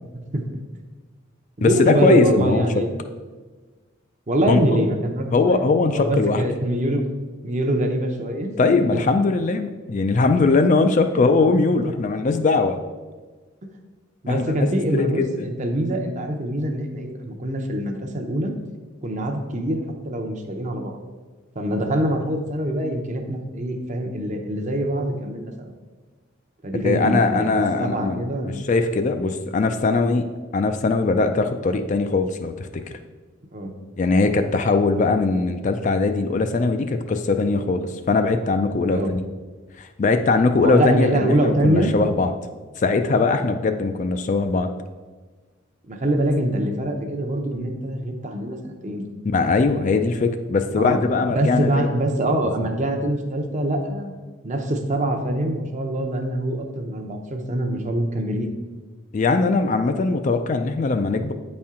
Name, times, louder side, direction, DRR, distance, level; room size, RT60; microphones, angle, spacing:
voice 1, 0.1-0.6 1.6-3.0 4.3-5.6 5.9-7.1 7.4-8.8 14.2-18.5 19.0-21.0 21.5-25.7 26.6-28.6 33.5-33.7 38.9-39.1 40.6-41.9 45.9-49.0 50.8-51.0 51.3-54.1 54.4-58.5, right 1 dB, 35° right, 4 dB, 0.6 m, -24 dB
voice 2, 1.6-2.7 4.5-4.8 5.3-6.4 8.6-12.8 14.3-15.5 26.8-32.7 34.0-39.2 39.8-42.3 42.8-44.7 49.3-51.9 59.1-61.3, left 3 dB, 35° left, 7 dB, 0.3 m, -20 dB
8.6 x 4.3 x 3.6 m, 1.3 s
head